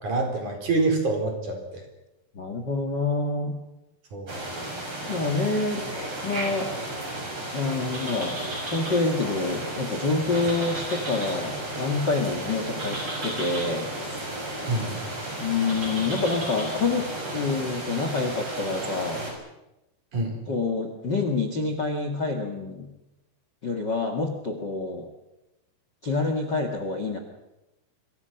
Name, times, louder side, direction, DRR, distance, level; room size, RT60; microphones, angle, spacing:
voice 1, 0.0-1.8 4.1-4.3 14.7-15.0 20.1-20.4, right 3 dB, 50° right, 3 dB, 5.6 m, -26 dB
voice 2, 2.3-3.6 5.1-5.9 6.2-6.7 7.5-8.4 8.7-14.3 15.4-19.2 20.5-22.9 23.6-25.1 26.0-27.2, left 3 dB, 35° left, 5 dB, 1.9 m, -27 dB
sound 1, 4.3-19.3, right 1 dB, 30° right, 7.4 m, -33 dB
26.0 x 24.0 x 5.9 m, 0.95 s
omnidirectional pair, 4.8 m